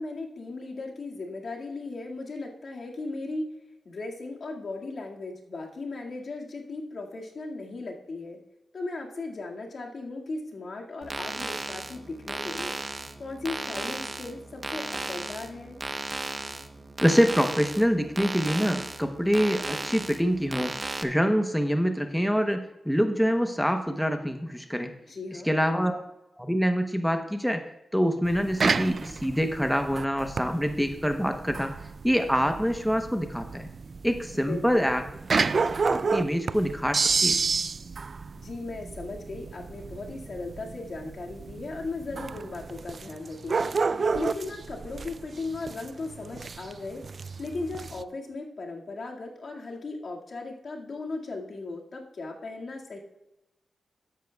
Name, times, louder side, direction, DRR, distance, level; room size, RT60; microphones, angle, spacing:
voice 1, 0.0-3.5 3.9-8.4 8.7-12.8 13.2-15.8 25.1-25.5 34.3-34.9 38.3-53.0, left 3 dB, 65° left, -1 dB, 2.0 m, -37 dB
sound 1, 11.0-21.0, right 2 dB, 35° right, 0.9 m, -35 dB
voice 2, 17.0-24.9 25.4-26.0 26.4-27.6 27.9-31.7 32.0-33.7 34.0-35.0 35.8-37.4, equal, ahead, 6 dB, 0.9 m, -25 dB
sound 2, 28.3-48.0, right 4 dB, 55° right, 0.4 m, -30 dB
13.0 x 10.5 x 2.3 m, 0.93 s
cardioid pair, 70°, 0 cm